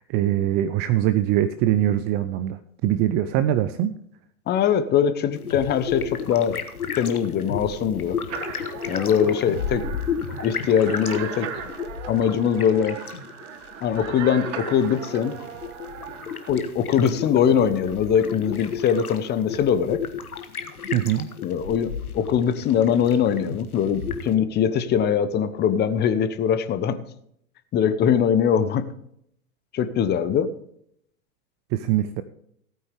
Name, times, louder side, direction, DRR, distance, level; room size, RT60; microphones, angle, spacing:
voice 1, 0.1-3.9 20.9-21.3 31.7-32.2, right 12 dB, 25° right, 12 dB, 0.5 m, -22 dB
voice 2, 4.5-6.6 7.0-8.2 8.9-9.9 10.4-11.5 12.1-13.0 13.8-15.3 16.5-20.0 21.4-27.0 27.7-28.9 29.7-30.5, left 8 dB, 25° left, 12 dB, 1.0 m, -22 dB
sound 1, 5.3-24.4, left 6 dB, 80° left, 1.4 m, -34 dB
sound 2, 8.3-16.5, right 7 dB, 55° right, 1.7 m, -37 dB
16.5 x 9.1 x 3.5 m, 0.71 s
figure-of-eight pair, 100°, 43 cm